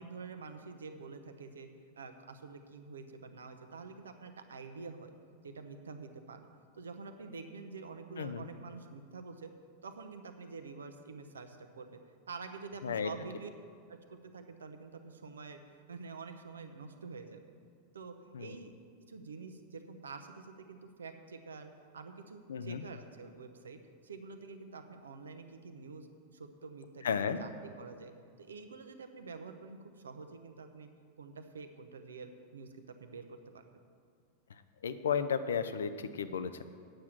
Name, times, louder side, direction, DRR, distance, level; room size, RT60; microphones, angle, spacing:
voice 1, 0.0-1.7 2.0-5.1 5.4-6.4 6.7-9.5 9.8-12.0 12.3-13.5 13.9-17.4 17.9-18.7 19.0-28.1 28.4-30.9 31.2-33.6, right 4 dB, 70° right, 7 dB, 0.8 m, -47 dB
voice 2, 8.2-8.5 12.8-13.1 18.3-18.5 22.5-22.8 27.0-27.4 34.8-36.6, left 7 dB, 65° left, 11 dB, 0.6 m, -33 dB
8.9 x 7.2 x 7.5 m, 2.3 s
figure-of-eight pair, 90°, 0 cm